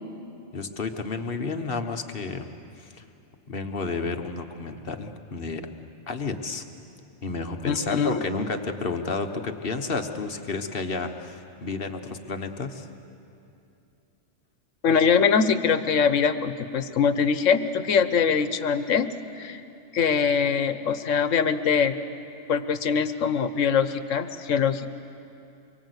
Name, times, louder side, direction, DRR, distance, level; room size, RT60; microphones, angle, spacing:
voice 1, 0.5-2.5 2.8-3.0 3.5-5.7 6.1-6.6 7.2-12.9, left 4 dB, 50° left, 6 dB, 1.4 m, -31 dB
voice 2, 7.7-8.2 14.8-19.1 19.4-19.6 19.9-21.9 22.5-24.9, left 6 dB, 85° left, 11 dB, 1.3 m, -23 dB
25.0 x 23.0 x 8.2 m, 2.7 s
omnidirectional pair, 1.3 m